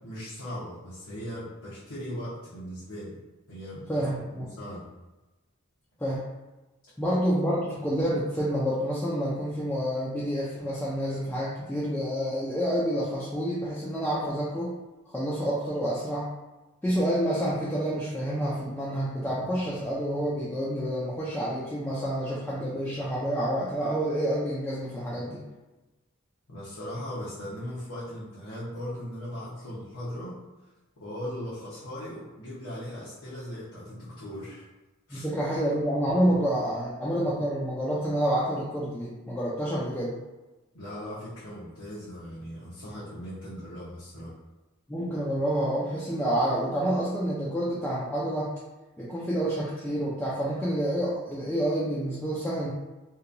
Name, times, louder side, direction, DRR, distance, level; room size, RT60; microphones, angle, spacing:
voice 1, 0.0-3.1 3.5-3.8 4.4-4.9 26.5-30.3 31.0-34.6 35.1-35.3 40.7-44.3, equal, 85° left, -10 dB, 0.8 m, -38 dB
voice 2, 3.9-4.5 6.0-6.2 7.0-14.7 15.1-16.3 16.8-25.4 35.1-40.1 44.9-48.5 49.0-52.7, equal, 5° left, -8 dB, 0.3 m, -28 dB
2.8 x 2.2 x 2.5 m, 1.1 s
head